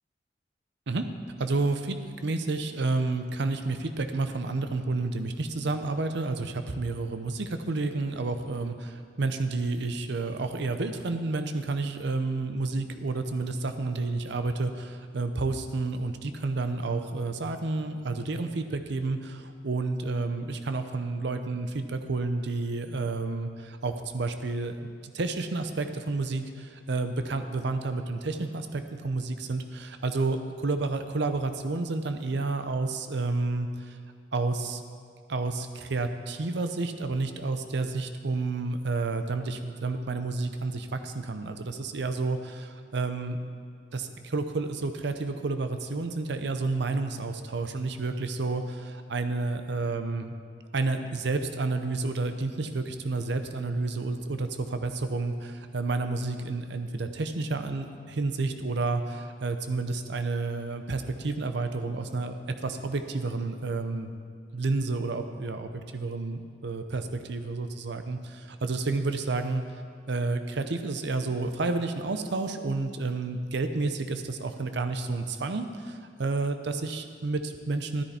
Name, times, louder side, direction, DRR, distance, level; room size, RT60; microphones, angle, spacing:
voice 1, 1.4-34.0 34.3-34.8 35.3-43.4 43.9-50.3 50.7-64.1 64.5-69.6 70.1-78.0, right 3 dB, 70° right, 8 dB, 0.7 m, -30 dB
12.5 x 10.0 x 4.3 m, 2.1 s
head